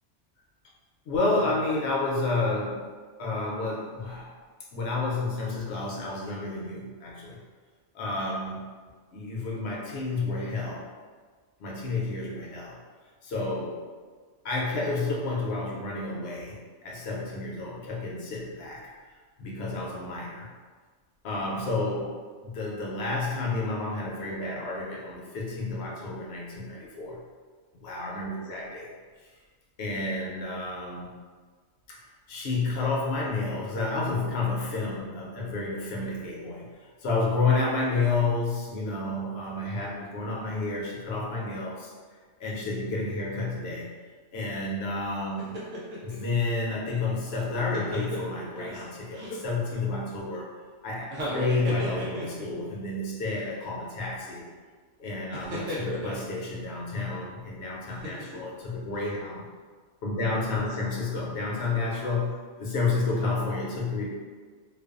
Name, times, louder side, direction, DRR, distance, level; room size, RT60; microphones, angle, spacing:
voice 1, 1.1-2.8 3.2-4.3 4.7-7.4 7.9-8.6 9.1-10.9 11.6-12.8 13.2-13.8 14.4-18.8 19.4-20.5 21.2-22.2 22.4-27.2 27.8-28.9 29.8-31.1 31.9-32.0 32.3-41.9 42.4-44.0 44.3-45.5 46.0-50.5 50.8-54.5 55.0-59.4 60.0-64.1, left 3 dB, 65° left, -4 dB, 0.7 m, -30 dB
sound 1, 45.4-46.2 47.3-48.8 49.1-49.8 51.0-52.6 53.3-53.4 55.3-56.3 57.9-58.5 59.0-59.1, equal, 85° right, 1.0 m, -35 dB
2.4 x 2.2 x 2.3 m, 1.5 s
omnidirectional pair, 1.3 m